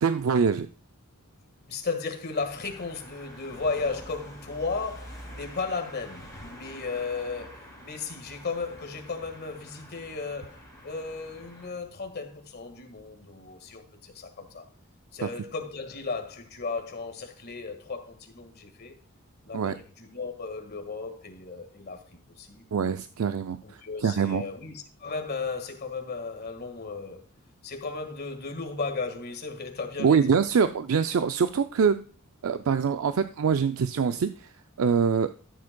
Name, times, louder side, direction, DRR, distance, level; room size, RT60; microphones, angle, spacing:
voice 1, 0.0-0.7 15.2-15.3 19.5-19.7 22.7-23.6 24.0-24.4 30.0-32.0 32.4-34.5 34.8-35.3, right 6 dB, 65° right, 0.4 m, -24 dB
voice 2, 1.7-14.7 15.1-19.0 19.4-22.1 22.4-22.6 23.6-24.7 25.0-27.2 27.6-30.4, left 4 dB, 45° left, 1.7 m, -35 dB
sound 1, 2.3-11.7, equal, 15° left, 5.0 m, -47 dB
13.0 x 7.7 x 2.2 m
head